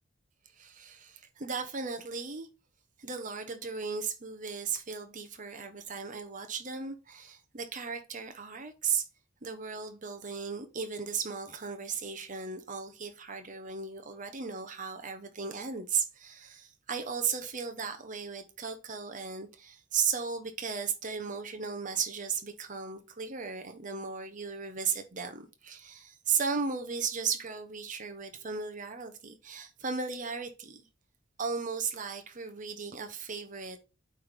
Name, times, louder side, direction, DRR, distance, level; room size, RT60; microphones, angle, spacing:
voice 1, 0.5-2.5 3.0-9.0 9.4-30.9 31.4-33.8, right 6 dB, 40° right, 1.0 m, -36 dB
8.6 x 3.5 x 3.7 m
head